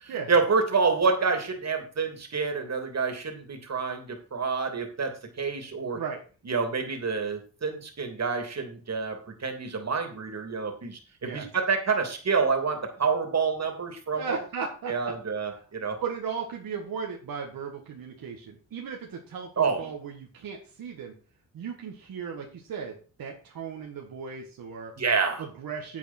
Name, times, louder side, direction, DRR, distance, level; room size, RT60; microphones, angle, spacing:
voice 1, 0.0-6.0 6.5-14.4 14.9-16.0 19.6-19.9 25.0-25.4, right 5 dB, 50° right, 5 dB, 2.8 m, -28 dB
voice 2, 14.1-15.1 16.0-21.1 21.5-24.9 25.4-26.0, right 6 dB, 75° right, 0 dB, 1.8 m, -36 dB
9.4 x 8.4 x 4.4 m, 0.37 s
supercardioid pair, 55°, 34 cm